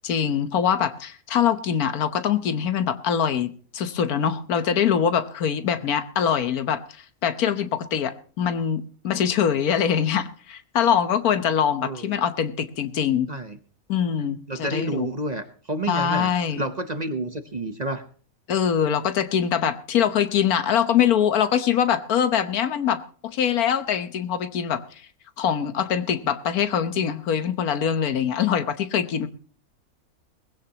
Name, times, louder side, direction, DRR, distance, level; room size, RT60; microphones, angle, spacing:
voice 1, 0.0-6.8 7.2-13.3 13.9-15.1 15.9-16.6 18.5-24.8 25.4-29.3, left 8 dB, 80° left, 11 dB, 1.5 m, -23 dB
voice 2, 11.8-12.2 13.3-13.6 14.5-18.0, right 2 dB, 35° right, 9 dB, 0.9 m, -30 dB
20.0 x 16.0 x 2.9 m, 0.43 s
omnidirectional pair, 1.5 m